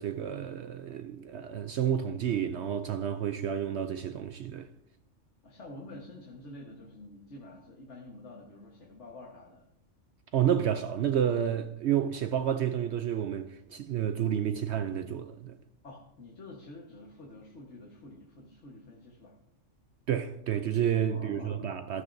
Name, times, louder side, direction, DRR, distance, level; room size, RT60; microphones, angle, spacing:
voice 1, 0.0-4.7 10.3-15.6 20.1-22.0, right 9 dB, 65° right, 0.8 m, -30 dB
voice 2, 5.4-9.7 15.8-19.3 21.0-21.7, left 2 dB, 60° left, 1.7 m, -48 dB
14.5 x 13.5 x 2.7 m
omnidirectional pair, 1.3 m